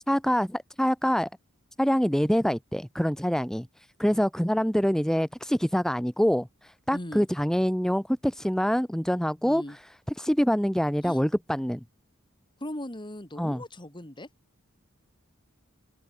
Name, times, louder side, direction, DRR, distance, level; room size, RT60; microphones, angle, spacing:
voice 1, 0.1-1.3 1.8-9.8 10.2-11.8 13.4-13.6, equal, 5° left, 1.0 m, -25 dB
voice 2, 6.9-7.3 9.4-9.8 11.0-11.2 12.6-14.3, left 1 dB, 20° left, 2.7 m, -38 dB
open air
head